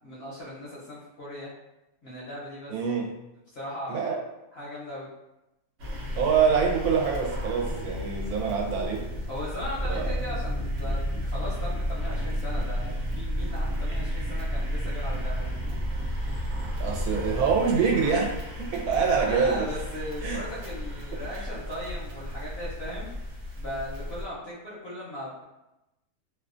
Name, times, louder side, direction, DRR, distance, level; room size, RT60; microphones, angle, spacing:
voice 1, 0.0-1.5 2.0-2.7 3.5-4.2 4.5-5.1 9.3-15.5 19.2-23.1 23.6-25.4, equal, 55° left, -8 dB, 0.7 m, -38 dB
voice 2, 2.7-3.1 3.9-4.2 6.2-9.1 9.9-10.2 16.8-19.7 20.2-20.4 21.3-21.5, right 6 dB, 80° right, -1 dB, 1.0 m, -25 dB
sound 1, 5.8-24.3, left 1 dB, 65° right, 0.7 m, -36 dB
sound 2, 9.7-17.6, equal, 15° right, 0.4 m, -31 dB
2.6 x 2.1 x 2.4 m, 0.93 s
omnidirectional pair, 1.6 m